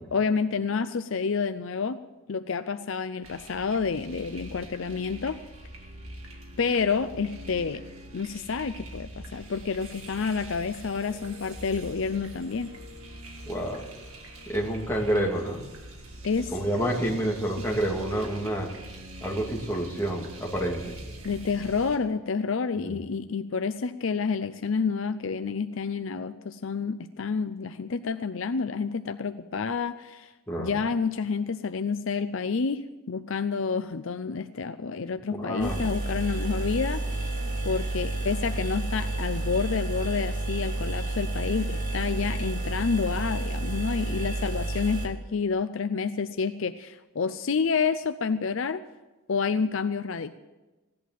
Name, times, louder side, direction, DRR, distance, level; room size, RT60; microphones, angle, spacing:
voice 1, 0.1-2.0 2.3-5.4 6.6-7.8 8.1-12.7 16.2-16.5 21.2-30.3 30.6-37.0 37.6-48.8 49.3-50.4, left 5 dB, 60° left, 11 dB, 0.5 m, -29 dB
sound 1, 3.2-22.0, right 1 dB, 75° right, 2.4 m, -43 dB
voice 2, 13.4-13.9 14.5-15.6 16.5-18.7 19.2-20.9 22.8-23.0 30.5-30.7 35.3-35.9, right 1 dB, 10° left, -2 dB, 2.5 m, -28 dB
sound 2, 35.6-45.1, right 2 dB, 40° right, 2.4 m, -30 dB
16.0 x 11.0 x 7.6 m, 1.1 s
head